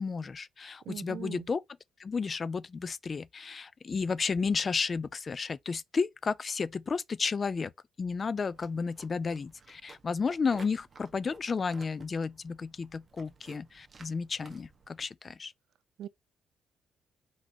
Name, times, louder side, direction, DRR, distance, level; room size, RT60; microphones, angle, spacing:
voice 1, 0.0-1.6 2.0-7.7 8.0-15.5, left 5 dB, 35° left, 0.3 m, -32 dB
voice 2, 0.8-1.5 16.0-16.1, right 11 dB, 70° right, 0.4 m, -40 dB
sound 1, 8.5-15.0, right 4 dB, 35° right, 1.2 m, -55 dB
4.7 x 3.8 x 2.8 m
cardioid pair, 90°, 0 cm